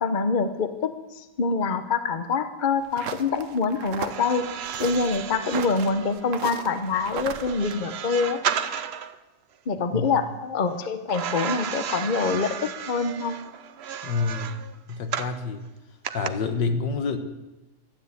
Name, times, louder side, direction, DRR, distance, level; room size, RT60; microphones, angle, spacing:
voice 1, 0.0-4.5 4.8-8.4 9.7-13.4, left 4 dB, 40° left, 9 dB, 0.7 m, -25 dB
sound 1, 2.8-7.7, right 7 dB, 55° right, 0.9 m, -36 dB
sound 2, 4.0-9.2 11.1-15.4 16.0-16.3, right 8 dB, 75° right, 0.5 m, -33 dB
voice 2, 14.0-14.6 14.9-15.6 16.1-17.2, left 4 dB, 70° left, 8 dB, 1.8 m, -27 dB
13.0 x 10.0 x 8.2 m, 1.1 s
omnidirectional pair, 2.0 m